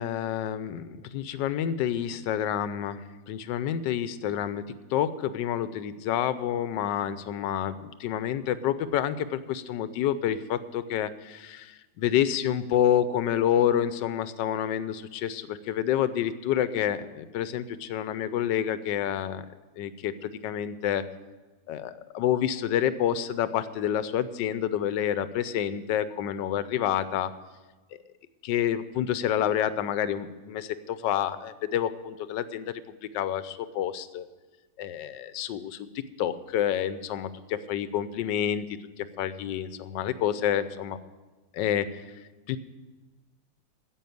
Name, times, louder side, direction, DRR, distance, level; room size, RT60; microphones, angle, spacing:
voice 1, 0.0-19.5 19.8-21.0 21.7-27.3 28.4-34.3 34.8-35.9 36.2-41.0 41.5-42.0 42.5-42.6, left 10 dB, 80° left, 13 dB, 1.3 m, -28 dB
10.0 x 8.3 x 9.3 m, 1.2 s
omnidirectional pair, 1.9 m